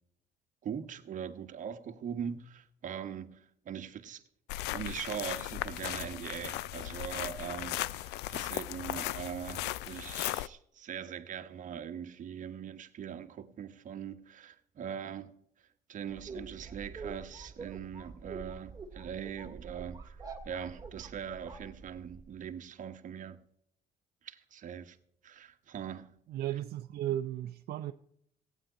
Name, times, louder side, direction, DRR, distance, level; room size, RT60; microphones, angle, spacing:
voice 1, 0.6-4.2 4.7-15.3 15.9-23.4 24.2-25.0 25.2-26.1, right 8 dB, 50° right, 1.2 m, -41 dB
sound 1, 4.5-10.5, left 16 dB, 90° left, 0.4 m, -37 dB
sound 2, 16.1-22.3, right 4 dB, 20° right, 2.3 m, -46 dB
voice 2, 26.3-27.9, right 12 dB, 65° right, 0.6 m, -35 dB
15.5 x 9.1 x 4.9 m
cardioid pair, 110°, 17 cm